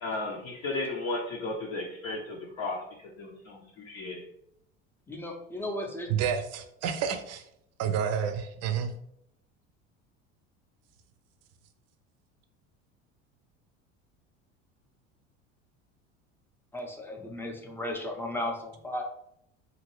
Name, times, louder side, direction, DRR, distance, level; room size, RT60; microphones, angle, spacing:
voice 1, 0.0-2.8 3.2-4.2, left 2 dB, 50° left, -3 dB, 0.7 m, -34 dB
voice 2, 5.1-6.1 16.7-19.0, left 1 dB, 5° left, 1 dB, 0.6 m, -35 dB
voice 3, 6.1-7.4 7.8-8.9, right 8 dB, 45° right, 8 dB, 0.5 m, -29 dB
2.8 x 2.5 x 3.0 m, 0.74 s
hypercardioid pair, 85°, 35 cm